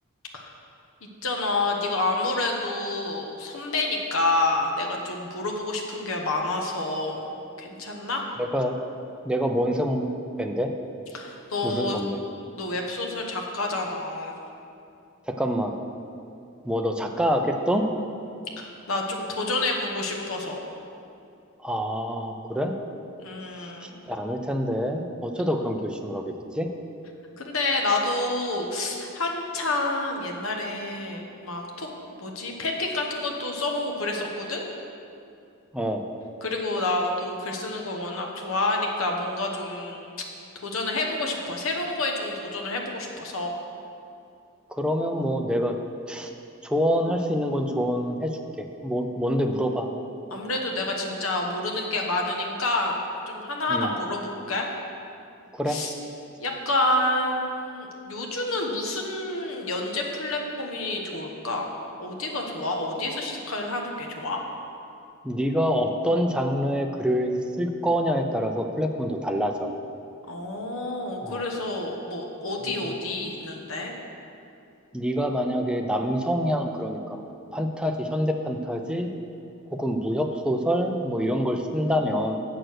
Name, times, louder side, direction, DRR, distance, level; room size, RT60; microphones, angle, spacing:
voice 1, 1.0-7.2 7.6-8.2 11.1-12.0 12.5-14.3 18.6-20.7 23.2-24.0 27.4-31.9 32.2-34.7 36.4-40.2 40.6-43.5 50.3-53.0 53.3-54.7 55.7-55.9 56.4-61.7 62.0-64.4 70.3-73.9, left 2 dB, 65° left, 1 dB, 1.2 m, -28 dB
voice 2, 8.4-8.8 9.2-10.1 10.4-10.7 11.6-12.2 15.3-15.8 16.6-17.9 21.6-22.7 23.8-26.7 35.7-36.0 44.7-45.8 46.1-46.3 46.6-49.9 53.7-53.9 55.5-55.8 65.2-69.7 71.2-71.4 74.9-79.1 79.7-82.4, equal, 5° right, 3 dB, 0.5 m, -26 dB
7.6 x 6.7 x 6.4 m, 2.6 s
head